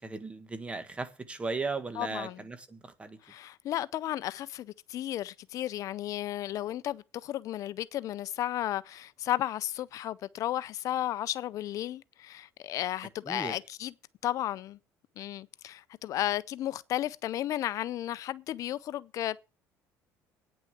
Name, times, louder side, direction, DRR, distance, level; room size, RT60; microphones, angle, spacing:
voice 1, 0.0-3.2 13.3-13.6, right 3 dB, 15° right, 1.6 m, -36 dB
voice 2, 2.0-2.4 3.2-13.9 14.2-14.8 15.2-19.4, left 13 dB, 55° left, 0.5 m, -34 dB
9.5 x 6.2 x 7.9 m
cardioid pair, 120°, 7 cm